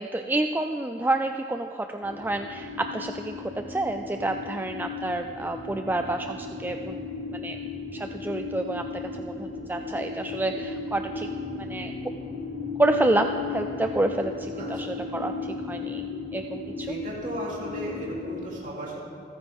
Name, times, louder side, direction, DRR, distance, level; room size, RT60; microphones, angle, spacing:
voice 1, 0.0-7.1 7.3-7.6 7.9-11.3 11.6-11.9 12.8-16.1 16.3-17.0, right 2 dB, 10° right, 5 dB, 0.3 m, -29 dB
sound 1, 2.0-18.5, left 4 dB, 90° left, 2.6 m, -36 dB
voice 2, 16.9-19.0, right 1 dB, 45° right, -4 dB, 3.1 m, -35 dB
27.5 x 9.6 x 3.6 m, 2.6 s
head